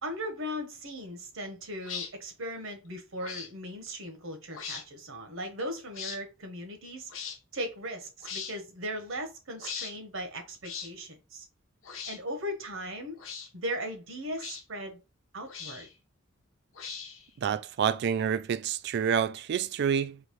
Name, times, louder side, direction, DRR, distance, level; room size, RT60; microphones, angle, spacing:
voice 1, 0.0-7.1 7.5-11.5 12.1-13.2 13.5-15.0 15.3-15.9, equal, 70° right, 1.1 m, -38 dB
sound 1, 1.8-2.1 3.2-3.5 4.5-4.8 5.9-6.2 7.1-7.4 8.2-8.5 9.6-9.9 10.6-10.9 11.8-12.2 13.2-13.5 14.4-14.6 15.5-15.9 16.7-17.3, left 6 dB, 70° left, 0.9 m, -39 dB
voice 2, 17.4-20.2, right 7 dB, 55° right, 0.3 m, -28 dB
4.0 x 3.0 x 3.1 m
head